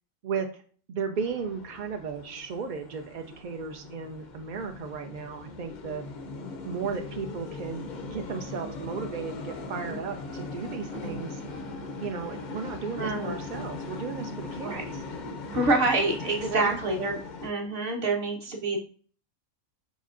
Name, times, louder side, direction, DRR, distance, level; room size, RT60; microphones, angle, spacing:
voice 1, 0.2-0.6 0.9-6.1 6.6-11.4 12.0-15.0 16.4-16.8, right 5 dB, 70° right, 4 dB, 0.4 m, -35 dB
sound 1, 1.2-17.5, left 3 dB, 60° left, 0.5 m, -40 dB
voice 2, 13.0-13.4 14.6-14.8 15.5-18.8, right 2 dB, 45° right, 0 dB, 1.0 m, -27 dB
5.4 x 4.1 x 2.4 m, 0.44 s
omnidirectional pair, 1.4 m